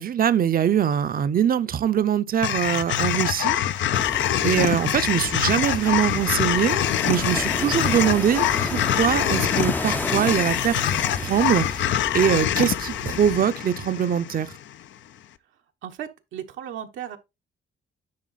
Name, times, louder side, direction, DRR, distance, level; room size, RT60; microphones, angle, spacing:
voice 1, 0.0-3.6 4.4-6.8 7.0-11.9 12.1-14.5, right 9 dB, 45° right, 0.7 m, -23 dB
sound 1, 2.4-14.7, left 11 dB, 70° left, 0.6 m, -25 dB
sound 2, 3.9-13.4, left 2 dB, 10° left, 0.5 m, -33 dB
voice 2, 15.8-17.2, right 10 dB, 80° right, 1.0 m, -35 dB
9.6 x 3.7 x 4.0 m
cardioid pair, 90°, 20 cm